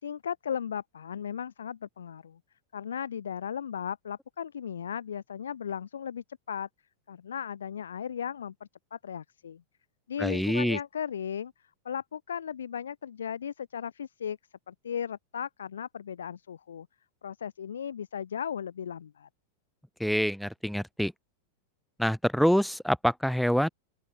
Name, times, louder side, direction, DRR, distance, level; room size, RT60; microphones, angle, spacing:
voice 1, 0.0-2.4 2.7-6.7 7.1-9.6 10.1-11.5 11.8-14.4 14.7-16.9 17.2-19.3, left 8 dB, 65° left, 2.8 m, -36 dB
voice 2, 10.2-10.8 20.0-21.1 22.0-23.7, equal, ahead, 0.8 m, -26 dB
open air
figure-of-eight pair, 90°, 0 cm